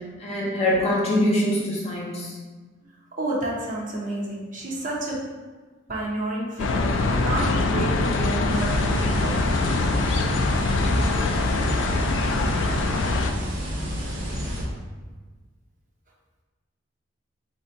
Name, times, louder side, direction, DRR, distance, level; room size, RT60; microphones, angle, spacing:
voice 1, 0.2-2.3, left 1 dB, 35° left, -4 dB, 0.9 m, -23 dB
voice 2, 3.2-5.2 5.9-9.5, right 1 dB, 40° right, -4 dB, 0.8 m, -30 dB
sound 1, 6.6-13.3, left 2 dB, 80° left, 0.4 m, -23 dB
sound 2, 8.5-14.6, equal, 85° right, 1.1 m, -30 dB
3.9 x 2.7 x 4.4 m, 1.3 s
head